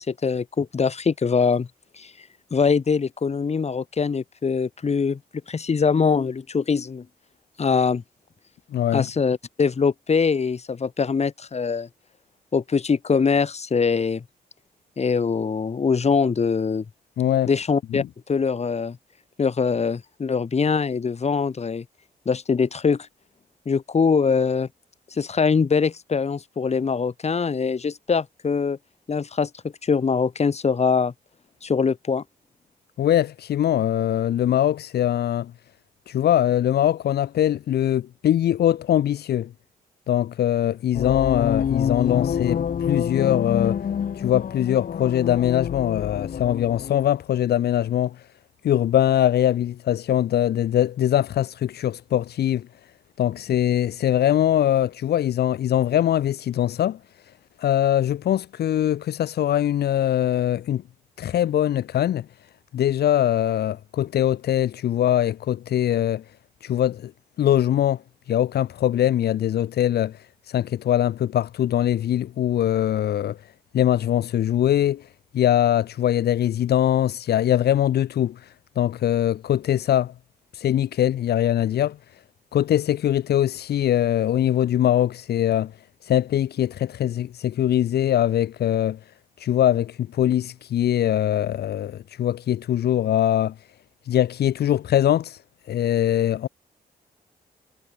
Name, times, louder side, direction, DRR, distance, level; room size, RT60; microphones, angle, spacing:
voice 1, 0.0-1.7 2.0-2.1 2.5-5.2 5.5-7.0 7.6-8.0 8.9-11.9 12.5-14.2 15.0-16.8 17.5-19.0 19.4-21.8 22.2-23.1 23.6-24.7 25.1-28.8 29.1-29.5 29.8-31.1 31.6-32.2, left 5 dB, 40° left, 3.3 m, -23 dB
voice 2, 8.7-9.0 17.2-17.5 17.9-18.1 33.0-35.5 36.1-39.5 40.1-43.8 44.1-48.2 48.6-52.7 53.2-57.0 57.6-60.8 61.2-62.2 62.7-66.2 66.6-67.1 67.4-68.0 68.3-70.2 70.5-73.4 73.7-75.1 75.3-78.4 78.8-80.1 80.5-82.0 82.5-85.7 86.0-89.0 89.4-93.5 94.1-95.4 95.7-96.5, left 11 dB, 80° left, 1.3 m, -22 dB
sound 1, 40.9-47.1, left 8 dB, 60° left, 1.8 m, -27 dB
cardioid pair, 95°, 16 cm